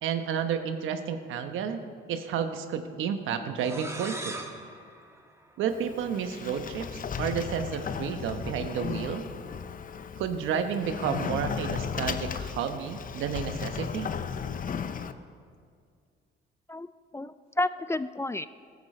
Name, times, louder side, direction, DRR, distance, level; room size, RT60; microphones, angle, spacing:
voice 1, 0.0-1.8 2.1-4.4 5.6-9.3 10.2-14.1, right 7 dB, 85° right, 8 dB, 1.1 m, -31 dB
sound 1, 3.6-6.2, right 2 dB, 15° right, 1.5 m, -41 dB
Sliding door, 5.7-15.1, left 7 dB, 45° left, 0.7 m, -35 dB
voice 2, 17.1-18.5, left 2 dB, 15° left, 14 dB, 0.3 m, -31 dB
14.5 x 13.5 x 4.4 m, 2.2 s
cardioid pair, 90°, 20 cm